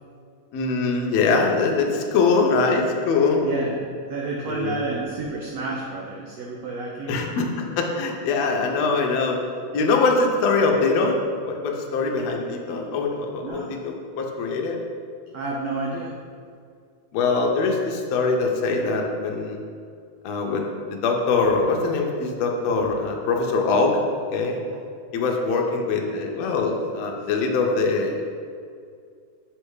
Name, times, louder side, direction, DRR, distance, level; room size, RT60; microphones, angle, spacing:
voice 1, 0.5-3.4 4.5-4.8 7.1-9.4 9.7-11.1 11.4-14.8 17.1-19.6 20.2-20.6 20.9-24.0 24.3-24.6 25.1-28.2, left 4 dB, 80° left, 1 dB, 1.5 m, -23 dB
voice 2, 3.4-7.2 13.4-13.8 15.3-16.2 27.2-27.3, right 3 dB, 85° right, -2 dB, 1.4 m, -30 dB
7.2 x 3.3 x 4.7 m, 2.2 s
omnidirectional pair, 3.8 m